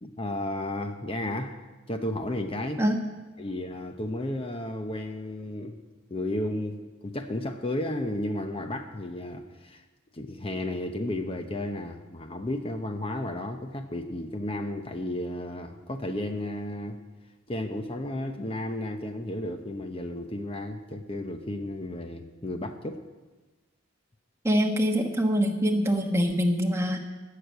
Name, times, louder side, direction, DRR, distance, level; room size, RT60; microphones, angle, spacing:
voice 1, 0.0-1.6 1.9-2.8 3.4-5.8 6.1-9.8 10.1-17.0 17.5-23.0, left 1 dB, 25° left, 6 dB, 0.8 m, -33 dB
voice 2, 24.4-27.0, equal, 15° right, 2 dB, 1.2 m, -24 dB
14.0 x 6.8 x 9.1 m, 1.2 s
head